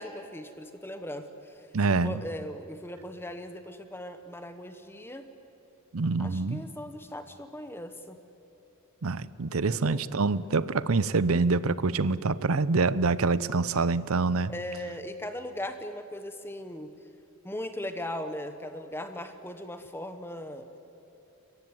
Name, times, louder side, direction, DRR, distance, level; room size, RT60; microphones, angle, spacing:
voice 1, 0.0-1.6 2.0-5.3 6.2-8.2 9.7-10.0 14.5-16.9 17.4-20.7, left 1 dB, 10° left, 8 dB, 1.0 m, -38 dB
voice 2, 1.7-2.2 5.9-6.6 9.0-14.5, right 4 dB, 70° right, 17 dB, 0.7 m, -26 dB
29.5 x 15.0 x 9.5 m, 2.8 s
head